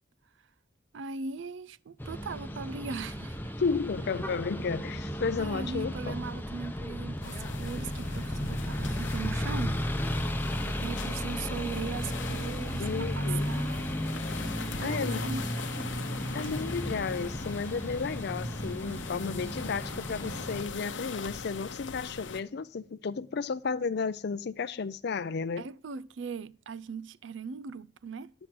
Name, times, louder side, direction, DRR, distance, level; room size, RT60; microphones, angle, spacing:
voice 1, 0.9-3.6 5.4-10.1 10.7-13.9 14.8-15.4 15.8-15.9 16.4-16.5 25.6-28.3, right 5 dB, 75° right, 0.5 m, -39 dB
sound 1, 2.0-20.6, equal, 10° left, 0.7 m, -34 dB
voice 2, 3.6-6.2 12.8-13.5 14.8-15.2 16.3-25.6, left 5 dB, 60° left, 0.5 m, -33 dB
sound 2, 7.2-22.4, left 4 dB, 80° left, 0.8 m, -41 dB
11.0 x 6.1 x 7.7 m
head